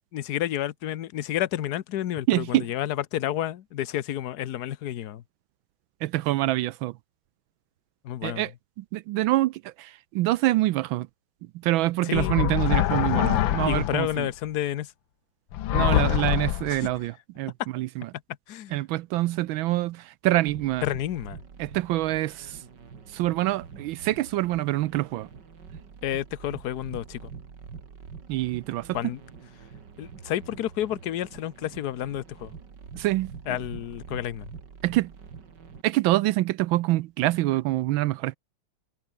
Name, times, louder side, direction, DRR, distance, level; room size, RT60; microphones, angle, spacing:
voice 1, 0.1-5.2 8.0-8.5 12.0-12.3 13.7-14.9 16.7-16.9 18.5-18.8 20.8-21.4 26.0-27.3 28.9-29.2 30.0-32.5 33.5-34.5, left 12 dB, 60° left, 1.3 m, -30 dB
voice 2, 2.3-2.7 6.0-6.9 8.2-8.5 8.9-11.1 11.6-14.3 15.7-18.1 18.7-20.8 21.6-22.6 23.1-25.3 28.3-29.0 33.0-33.3 34.8-35.1 35.8-38.4, right 16 dB, 80° right, 1.4 m, -25 dB
sound 1, 12.1-14.1 15.5-16.9, left 13 dB, 75° left, 1.6 m, -24 dB
sound 2, 20.5-35.8, right 6 dB, 60° right, 2.8 m, -45 dB
omnidirectional pair, 2.2 m